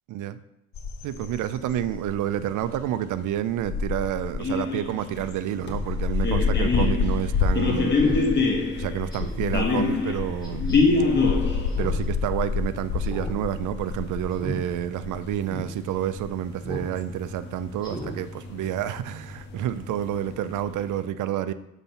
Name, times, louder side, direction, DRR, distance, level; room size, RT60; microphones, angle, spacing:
sound 1, 0.7-20.5, left 5 dB, 65° left, 0.8 m, -30 dB
voice 1, 1.0-8.0 8.8-10.8 11.8-21.5, right 11 dB, 80° right, 13 dB, 0.5 m, -29 dB
sound 2, 4.4-21.0, left 3 dB, 35° left, 1.4 m, -28 dB
Speech synthesizer, 5.6-5.8 6.2-6.3 6.6-7.0 7.4-7.5 8.0-8.2 8.6-8.7 9.1-9.5 10.4-10.7 11.7-12.1 12.3-12.4 13.0-13.4 13.6-13.9 14.3-14.6 15.0-15.1 15.5-15.7 16.6-16.9 17.2-17.4 17.8-18.1 18.5-18.6, equal, 15° left, 2.6 m, -36 dB
7.3 x 4.1 x 5.7 m, 0.86 s
cardioid pair, 90°, 30 cm